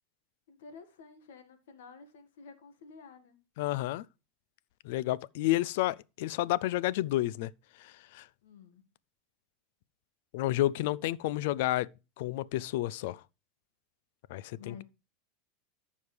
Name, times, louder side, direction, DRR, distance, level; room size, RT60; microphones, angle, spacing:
voice 1, 0.5-3.4 8.4-8.8 10.7-11.0 14.5-14.8, left 5 dB, 85° left, 1.6 m, -51 dB
voice 2, 3.6-4.0 4.8-7.5 7.8-8.2 10.3-11.9 12.2-13.2 14.3-14.8, left 15 dB, 65° left, 0.3 m, -30 dB
14.0 x 5.2 x 3.3 m
supercardioid pair, 150°, 0 cm